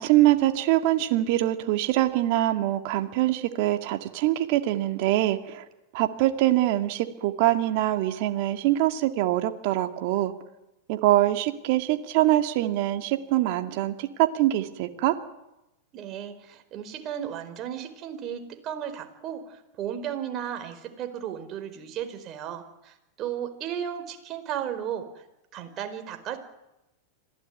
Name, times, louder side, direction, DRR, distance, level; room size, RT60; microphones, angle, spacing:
voice 1, 0.0-5.6 5.9-10.3 10.9-15.2, right 15 dB, 55° right, 7 dB, 2.2 m, -24 dB
voice 2, 15.9-25.1 25.5-26.4, right 9 dB, 40° right, 7 dB, 4.6 m, -35 dB
25.5 x 17.0 x 9.6 m, 0.92 s
hypercardioid pair, 105°, 0 cm